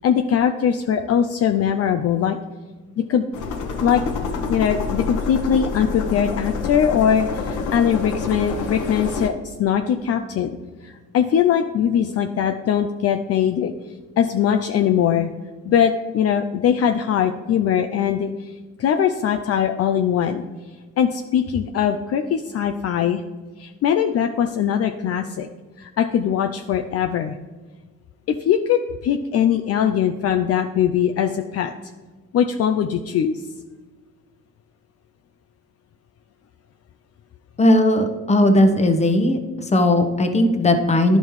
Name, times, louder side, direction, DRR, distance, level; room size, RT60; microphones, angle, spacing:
voice 1, 0.0-2.4 3.0-3.3 3.8-4.0 4.5-10.6 10.8-13.7 14.2-15.3 15.6-18.5 18.8-20.4 21.0-23.2 23.6-25.5 25.8-27.4 28.3-31.7 32.3-33.4, left 8 dB, 55° left, 6 dB, 0.5 m, -21 dB
sound 1, 3.3-9.3, left 4 dB, 85° left, 1.0 m, -27 dB
voice 2, 37.6-39.4 39.7-41.2, left 1 dB, 20° left, 6 dB, 1.0 m, -17 dB
11.0 x 5.3 x 3.1 m, 1.3 s
cardioid pair, 90°, 30 cm